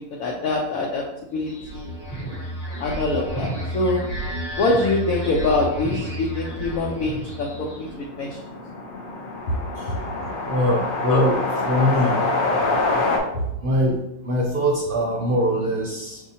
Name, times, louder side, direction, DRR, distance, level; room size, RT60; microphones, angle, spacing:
voice 1, 0.2-1.0 1.3-1.9 2.8-3.5 3.7-4.0 4.6-7.9 8.1-8.4 9.9-10.0 11.1-11.3 13.3-13.5, left 2 dB, 80° left, -2 dB, 1.1 m, -24 dB
sound 1, 1.4-8.0, right 1 dB, 20° left, 1.1 m, -31 dB
sound 2, 6.4-13.2, left 2 dB, 50° left, 0.7 m, -26 dB
voice 2, 10.5-11.4 11.7-12.2 13.6-16.2, equal, 55° right, -2 dB, 0.6 m, -22 dB
5.8 x 2.7 x 2.7 m, 0.86 s
omnidirectional pair, 1.5 m